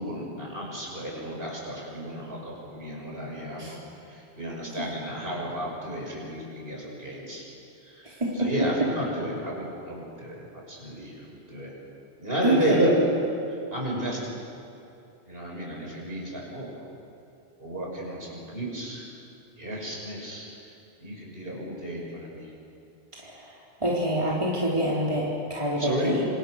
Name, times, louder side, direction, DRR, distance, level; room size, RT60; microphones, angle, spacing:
voice 1, 0.0-3.8 4.4-7.4 7.9-8.1 8.4-10.3 10.7-11.7 12.2-13.0 13.7-14.3 15.3-16.7 17.6-19.0 19.6-20.5 21.0-22.4 25.8-26.1, right 1 dB, 60° right, -2 dB, 6.7 m, -32 dB
voice 2, 8.0-8.7 12.4-12.8 23.2-23.3 23.8-26.3, right 1 dB, 30° right, -5 dB, 3.9 m, -26 dB
27.5 x 26.0 x 6.6 m, 2.7 s
omnidirectional pair, 1.1 m